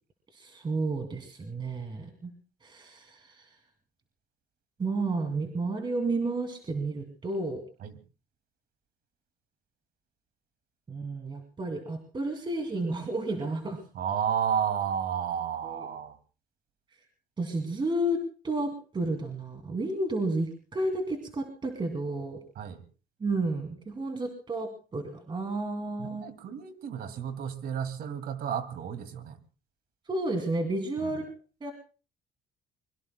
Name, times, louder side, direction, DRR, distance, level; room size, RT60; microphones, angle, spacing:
voice 1, 0.3-2.3 2.6-3.5 4.8-7.6 10.9-13.8 15.6-15.9 17.4-22.4 23.2-26.2 30.1-31.3 31.6-31.7, right 2 dB, 30° right, 5 dB, 2.5 m, -31 dB
voice 2, 13.9-16.2 22.6-22.8 26.0-29.4 31.0-31.1, right 8 dB, 65° right, 10 dB, 2.3 m, -32 dB
25.5 x 22.5 x 2.2 m, 0.35 s
cardioid pair, 110°, 17 cm